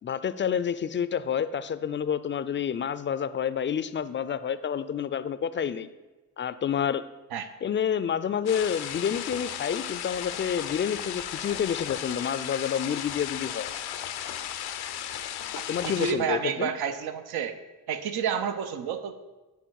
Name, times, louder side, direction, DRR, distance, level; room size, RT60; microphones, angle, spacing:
voice 1, 0.0-5.9 6.4-7.0 7.6-13.7 15.7-16.7, left 8 dB, 35° left, 14 dB, 0.4 m, -29 dB
sound 1, 8.5-16.1, left 10 dB, 80° left, 0.5 m, -35 dB
voice 2, 15.8-17.5 17.9-19.1, right 7 dB, 80° right, 9 dB, 0.6 m, -30 dB
9.1 x 3.5 x 4.7 m, 1.1 s
cardioid pair, 60°, 37 cm